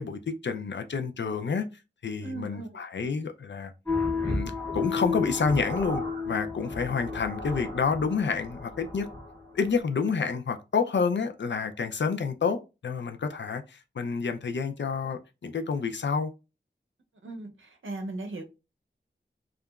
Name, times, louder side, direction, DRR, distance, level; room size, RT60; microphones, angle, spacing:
voice 1, 0.0-1.7 2.0-3.7 4.2-9.1 9.5-16.3, left 5 dB, 65° left, 0.4 m, -29 dB
voice 2, 2.2-2.7 17.2-18.4, right 2 dB, 80° right, 0.6 m, -37 dB
sound 1, 3.8-9.8, left 3 dB, 10° left, 1.2 m, -32 dB
2.8 x 2.4 x 2.3 m
wide cardioid pair, 55°, 20 cm